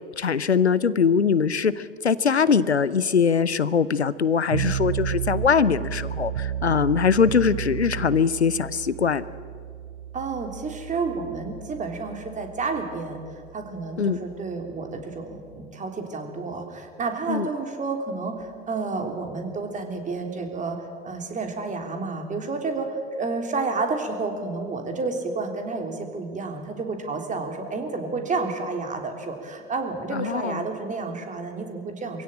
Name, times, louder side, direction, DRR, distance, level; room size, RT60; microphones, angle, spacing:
voice 1, 0.2-9.2 14.0-14.2 17.3-17.5 30.1-30.6, left 6 dB, 90° left, 17 dB, 0.7 m, -22 dB
sound 1, 4.5-15.7, right 10 dB, 70° right, 0.6 m, -33 dB
voice 2, 10.1-13.2 13.5-20.8 21.0-32.2, right 3 dB, 25° right, 4 dB, 3.3 m, -30 dB
24.0 x 16.0 x 8.8 m, 2.1 s
figure-of-eight pair, 80°, 32 cm